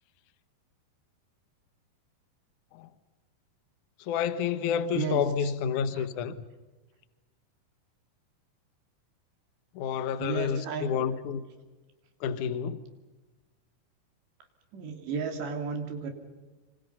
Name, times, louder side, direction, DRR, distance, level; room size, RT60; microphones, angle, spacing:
voice 1, 4.0-6.5 9.7-11.4 12.2-12.8, left 7 dB, 65° left, 2.2 m, -29 dB
voice 2, 10.2-10.9 14.7-16.1, right 5 dB, 85° right, 5.2 m, -33 dB
27.5 x 26.5 x 5.7 m
omnidirectional pair, 4.9 m